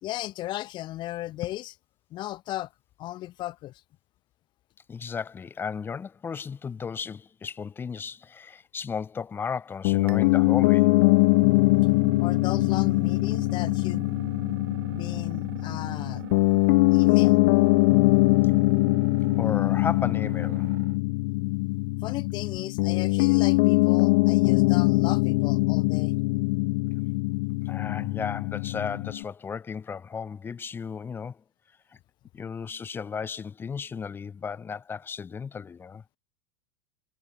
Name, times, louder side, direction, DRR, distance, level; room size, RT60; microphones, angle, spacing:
voice 1, 0.0-1.8 2.1-2.7 3.0-3.8 12.2-14.2 14.9-16.2 16.9-17.4 22.0-26.2, left 15 dB, 40° left, 1.9 m, -36 dB
voice 2, 4.9-10.9 19.3-20.7 27.6-31.4 32.3-36.0, left 6 dB, 20° left, 1.2 m, -35 dB
Piano, 9.8-29.2, left 26 dB, 60° left, 0.4 m, -22 dB
sound 1, 10.1-21.0, right 15 dB, 85° right, 0.5 m, -43 dB
supercardioid pair, 130°, 12 cm